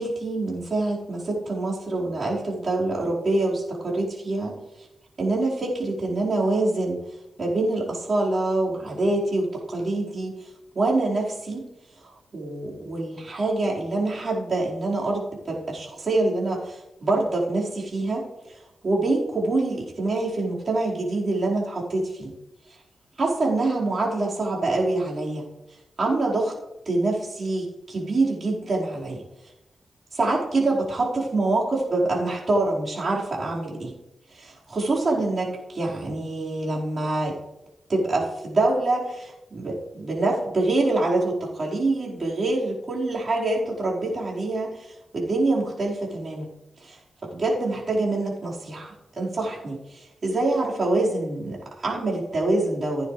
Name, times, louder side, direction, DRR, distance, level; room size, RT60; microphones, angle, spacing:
voice 1, 0.0-4.6 5.2-7.0 7.4-10.3 10.7-11.7 12.0-18.3 18.8-22.3 23.2-25.5 26.0-26.6 26.8-29.2 30.1-33.9 34.3-34.4 34.7-37.4 37.9-46.5 46.8-47.0 47.2-53.1, right 2 dB, 50° right, -5 dB, 4.5 m, -25 dB
16.5 x 9.5 x 3.3 m, 0.95 s
cardioid pair, 75°, 0 cm